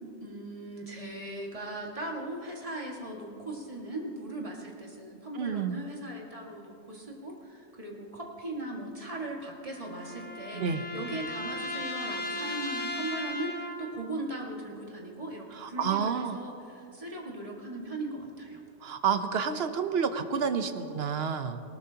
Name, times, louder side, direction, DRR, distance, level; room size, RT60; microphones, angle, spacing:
voice 1, 0.0-18.6, right 1 dB, 25° right, -2 dB, 1.9 m, -39 dB
voice 2, 5.3-5.8 10.5-10.8 15.5-16.4 18.8-21.6, right 6 dB, 55° right, 9 dB, 0.9 m, -29 dB
sound 1, 9.4-14.1, left 1 dB, 60° left, 1.5 m, -37 dB
19.0 x 19.0 x 2.9 m, 2.6 s
omnidirectional pair, 1.4 m